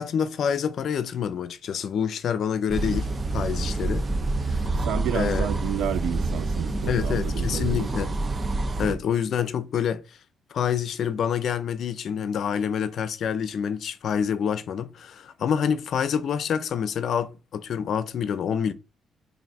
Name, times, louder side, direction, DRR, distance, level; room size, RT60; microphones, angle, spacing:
voice 1, 0.0-3.1 3.3-4.1 4.5-4.6 5.1-5.5 6.9-8.1 8.8-10.0 10.5-18.7, left 8 dB, 65° left, 0.5 m, -27 dB
sound 1, 2.7-9.0, right 2 dB, 35° right, 0.5 m, -27 dB
voice 2, 4.8-8.0 8.8-9.0, right 10 dB, 85° right, 0.5 m, -31 dB
3.3 x 2.6 x 4.0 m
cardioid pair, 90°, 0 cm